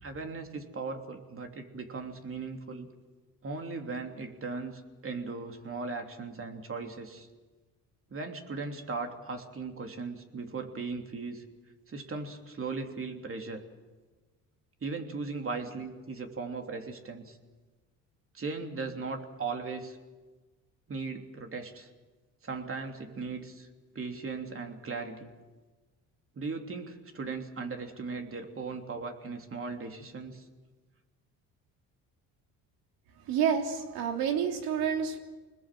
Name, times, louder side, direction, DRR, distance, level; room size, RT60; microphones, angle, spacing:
voice 1, 0.0-2.9 3.4-7.3 8.1-11.4 11.9-13.6 14.8-17.4 18.3-20.0 20.9-21.9 22.4-23.7 23.9-25.3 26.3-30.4, right 4 dB, 35° right, 4 dB, 3.3 m, -38 dB
voice 2, 33.3-35.2, right 7 dB, 75° right, 4 dB, 3.2 m, -29 dB
26.0 x 20.5 x 7.7 m, 1.3 s
supercardioid pair, 80°, 36 cm